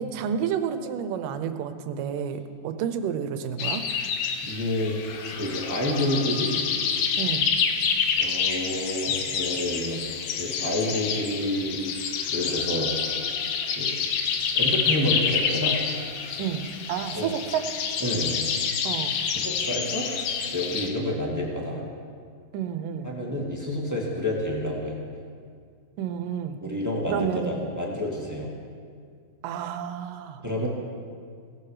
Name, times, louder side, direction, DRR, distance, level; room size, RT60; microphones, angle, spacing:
voice 1, 0.0-3.8 7.2-7.5 16.4-17.7 18.8-19.2 22.5-23.1 26.0-26.6 27.1-27.5 29.4-30.4, right 8 dB, 75° right, 9 dB, 2.4 m, -30 dB
sound 1, 3.6-20.9, left 6 dB, 75° left, 2.6 m, -28 dB
voice 2, 4.4-4.9 5.3-6.7 8.2-10.0 10.4-11.8 12.3-12.9 13.7-14.0 14.5-15.8 17.1-17.3 18.0-18.4 19.4-20.1 20.4-21.8 23.0-25.0 26.6-28.5 30.4-30.7, left 1 dB, 10° right, -2 dB, 1.1 m, -29 dB
18.0 x 14.5 x 5.0 m, 2.2 s
omnidirectional pair, 4.0 m